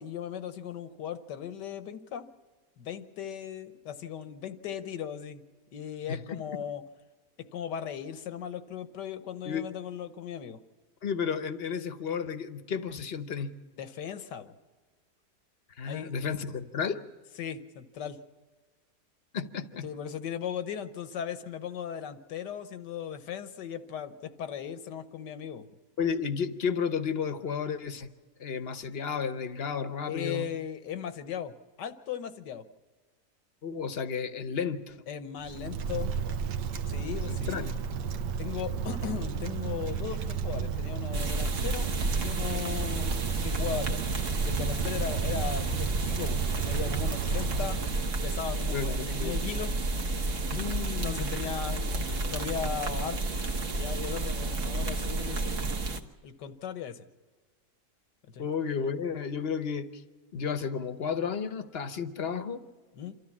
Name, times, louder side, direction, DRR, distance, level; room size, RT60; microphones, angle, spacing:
voice 1, 0.0-2.3 2.8-5.4 5.7-6.8 7.5-10.6 13.8-14.5 15.9-16.1 17.4-18.2 19.8-25.7 30.1-32.7 35.1-36.1 36.9-37.7 38.4-44.0 44.4-47.8 48.2-49.8 51.0-53.5 53.8-55.9 56.2-57.1 58.2-58.5 63.0-63.2, left 8 dB, 85° left, 11 dB, 1.6 m, -37 dB
voice 2, 11.0-13.5 15.8-17.0 19.3-19.9 26.0-28.1 28.4-30.4 33.6-35.0 37.3-37.8 48.7-49.4 50.5-51.3 58.4-60.0 60.3-62.6, left 6 dB, 45° left, 10 dB, 1.0 m, -32 dB
Wind, 35.4-48.2, right 6 dB, 85° right, 1.5 m, -33 dB
sound 1, 41.1-56.0, right 2 dB, 50° right, 1.5 m, -31 dB
27.0 x 13.5 x 7.2 m, 1.4 s
omnidirectional pair, 1.8 m